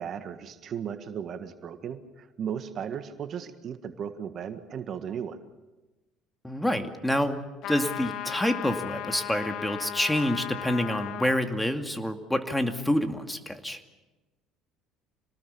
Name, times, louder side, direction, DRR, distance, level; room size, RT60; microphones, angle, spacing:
voice 1, 0.0-5.4, right 8 dB, 50° right, 9 dB, 1.7 m, -36 dB
voice 2, 6.4-7.4 7.7-13.8, left 1 dB, 5° left, 6 dB, 2.4 m, -27 dB
sound 1, 7.6-11.5, left 11 dB, 65° left, 1.3 m, -36 dB
27.0 x 19.5 x 7.1 m, 1.1 s
hypercardioid pair, 70°, 0 cm